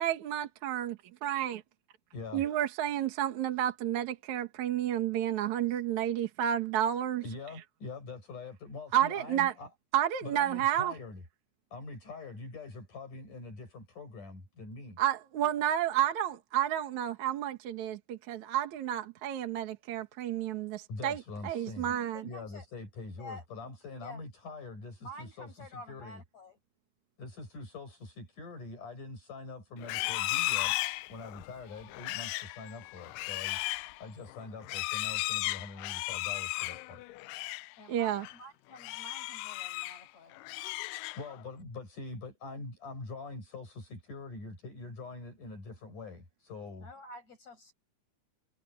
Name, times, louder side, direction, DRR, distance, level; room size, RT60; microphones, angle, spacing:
voice 1, 0.0-1.6 2.3-7.2 8.9-9.5 9.9-10.9 15.0-22.2 37.9-38.2, right 11 dB, 65° right, 2.8 m, -31 dB
voice 2, 2.1-2.4 7.2-9.7 10.2-11.2 11.7-15.0 20.9-21.9 22.2-26.2 27.2-30.8 31.1-33.6 34.0-37.0 41.2-46.9, left 3 dB, 70° left, 8.7 m, -44 dB
voice 3, 22.1-22.6 23.2-23.7 24.0-24.2 25.0-26.6 37.8-40.4 46.8-47.7, left 1 dB, 55° left, 8.3 m, -49 dB
Livestock farm animals working animals, 29.8-37.7 38.1-38.4 38.8-40.0 40.4-41.4, left 20 dB, 85° left, 2.2 m, -35 dB
omnidirectional pair, 3.8 m